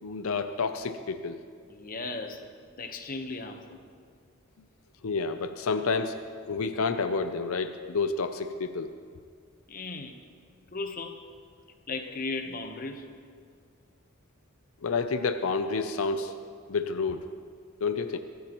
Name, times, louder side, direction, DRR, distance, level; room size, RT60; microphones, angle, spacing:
voice 1, 0.0-1.4 5.0-6.2 6.5-8.9 14.8-16.4 16.7-17.2 17.8-18.2, left 4 dB, 85° left, 9 dB, 0.6 m, -29 dB
voice 2, 1.7-2.5 2.8-3.8 9.7-10.1 10.7-11.2 11.9-13.1, left 3 dB, 40° left, 5 dB, 1.0 m, -36 dB
22.0 x 13.5 x 3.1 m, 2.1 s
head